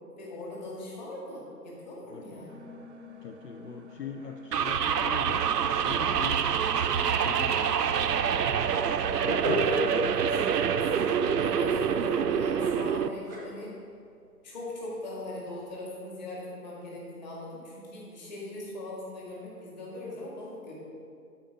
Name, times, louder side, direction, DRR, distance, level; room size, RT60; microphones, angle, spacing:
voice 1, 0.2-2.6 8.8-13.7 14.4-20.7, left 1 dB, 25° left, -5 dB, 1.9 m, -40 dB
voice 2, 2.1-2.5 3.2-5.4 5.8-6.6 7.0-9.5, left 6 dB, 75° left, 5 dB, 0.8 m, -42 dB
sound 1, 2.5-10.1, left 3 dB, 45° right, 0.7 m, -48 dB
sound 2, 4.5-13.1, right 7 dB, 75° right, 0.6 m, -26 dB
sound 3, 9.2-15.8, equal, 10° right, 0.9 m, -36 dB
12.5 x 4.5 x 5.3 m, 2.4 s
hypercardioid pair, 165°, 48 cm